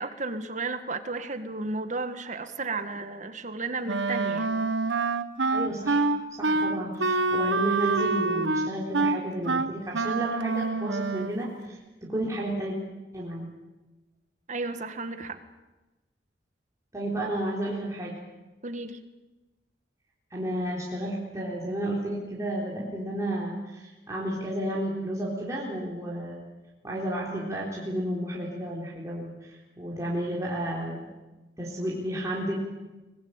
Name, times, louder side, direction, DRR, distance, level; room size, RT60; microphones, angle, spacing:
voice 1, 0.0-4.9 14.5-15.4 18.6-19.0, right 3 dB, 45° right, 9 dB, 1.7 m, -33 dB
Wind instrument woodwind instrument, 3.9-11.4, right 3 dB, 85° right, 1.1 m, -26 dB
voice 2, 5.5-6.1 6.4-12.8 13.1-13.5 16.9-18.2 20.3-26.5 26.8-31.1 31.6-32.6, right 1 dB, 20° right, -5 dB, 3.8 m, -32 dB
24.5 x 20.0 x 8.9 m, 1.1 s
head